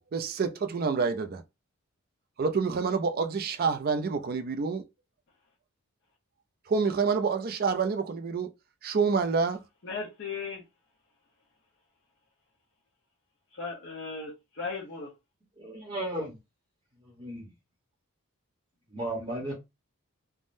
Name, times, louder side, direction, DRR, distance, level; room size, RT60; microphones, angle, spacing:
voice 1, 0.0-1.4 2.4-4.9 6.7-8.5 8.8-9.6, right 5 dB, 45° right, 0.4 m, -27 dB
voice 2, 9.8-10.6 13.5-15.1, left 4 dB, 55° left, 0.8 m, -37 dB
voice 3, 15.6-16.4 17.2-17.5 18.9-19.5, right 1 dB, 30° right, 0.9 m, -34 dB
3.5 x 2.1 x 2.5 m
head